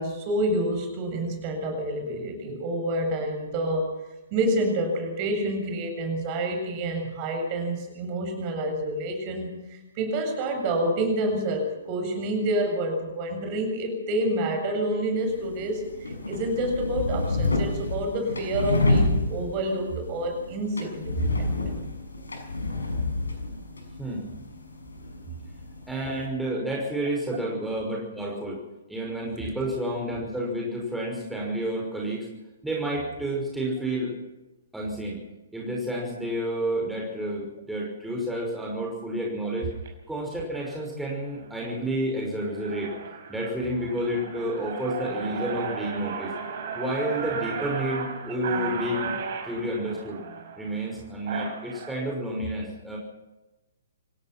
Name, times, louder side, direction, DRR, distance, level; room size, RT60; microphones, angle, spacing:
voice 1, 0.0-4.0 4.3-21.6, right 1 dB, 35° right, 4 dB, 7.6 m, -28 dB
sound 1, 15.2-26.3, left 2 dB, 80° left, 6.0 m, -29 dB
voice 2, 25.9-28.6 28.9-32.3 32.6-34.1 34.7-35.2 35.5-39.7 40.1-42.9 43.3-46.3 46.7-49.2 49.4-50.2 50.6-53.0, right 1 dB, 5° right, -3 dB, 5.8 m, -30 dB
sound 2, 39.7-39.9 40.5-40.8 41.3-41.7 42.1-42.2 42.5-51.9, right 6 dB, 50° right, 6.0 m, -35 dB
27.0 x 17.0 x 6.0 m, 1.0 s
figure-of-eight pair, 125°, 0 cm